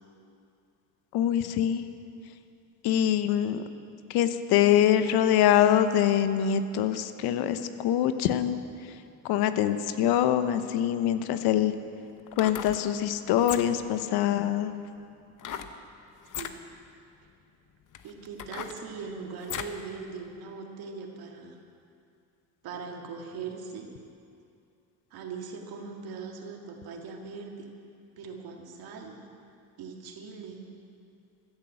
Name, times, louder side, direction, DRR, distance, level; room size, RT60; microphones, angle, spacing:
voice 1, 1.1-1.8 2.8-3.6 4.1-8.6 9.2-11.7 12.4-14.7, left 10 dB, 80° left, 11 dB, 0.9 m, -24 dB
sound 1, 12.2-12.8 13.4-13.9 15.4-15.8 16.2-16.6 17.3-17.4 17.9-19.8 20.3-20.4, left 9 dB, 55° left, 1.0 m, -38 dB
voice 2, 18.0-21.6 22.6-23.9 25.1-27.7 28.2-29.2 29.8-30.6, right 5 dB, 70° right, 2 dB, 2.2 m, -40 dB
14.5 x 10.5 x 7.7 m, 2.5 s
supercardioid pair, 85°, 37 cm